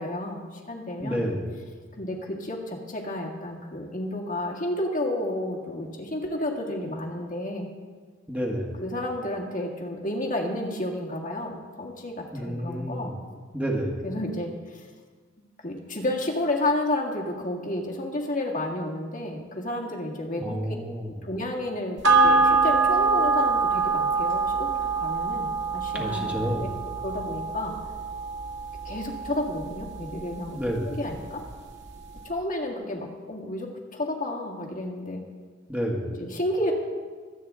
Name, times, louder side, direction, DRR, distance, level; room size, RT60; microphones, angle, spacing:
voice 1, 0.0-1.3 2.0-7.7 8.8-13.1 14.0-14.9 15.6-20.8 21.2-24.7 25.0-26.5 27.0-27.8 28.9-30.6 30.8-31.4 32.2-35.2 36.2-36.7, left 1 dB, 45° left, -1 dB, 1.8 m, -31 dB
voice 2, 1.0-1.4 8.3-8.7 12.3-13.2 13.5-14.0 20.4-21.1 25.9-26.7 30.5-30.9 35.7-36.1, equal, 5° right, -1 dB, 1.6 m, -29 dB
sound 1, 22.0-30.8 31.2-31.3, right 4 dB, 65° right, 1.8 m, -25 dB
23.5 x 8.8 x 3.7 m, 1.5 s
head